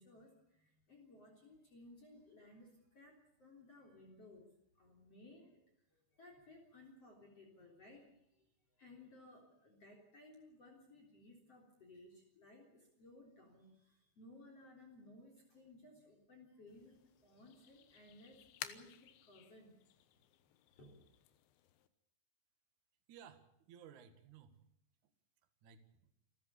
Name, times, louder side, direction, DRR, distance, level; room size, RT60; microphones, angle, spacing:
voice 1, 0.0-4.5 4.8-8.5 8.8-19.8 20.7-21.0, left 2 dB, 35° left, 1 dB, 4.3 m, -60 dB
sound 1, 16.7-21.9, left 12 dB, 80° left, 3.4 m, -54 dB
voice 2, 23.1-24.6 25.0-25.1 25.6-26.1, right 8 dB, 55° right, 8 dB, 2.6 m, -58 dB
28.0 x 14.0 x 8.4 m, 0.80 s
omnidirectional pair, 5.3 m